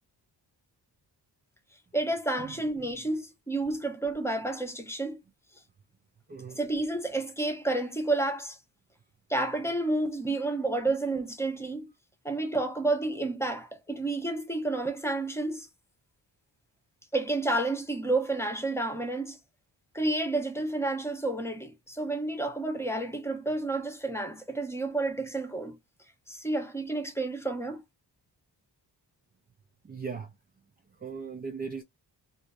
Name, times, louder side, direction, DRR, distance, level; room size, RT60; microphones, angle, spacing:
voice 1, 1.9-5.2 6.6-8.6 9.3-11.9 12.2-15.7 17.1-19.4 19.9-25.8 26.3-27.8, right 2 dB, 5° left, 0.9 m, -30 dB
voice 2, 6.3-6.6 29.8-30.4 30.9-31.8, right 5 dB, 25° right, 0.4 m, -38 dB
2.7 x 2.0 x 2.3 m
cardioid pair, 70°, 44 cm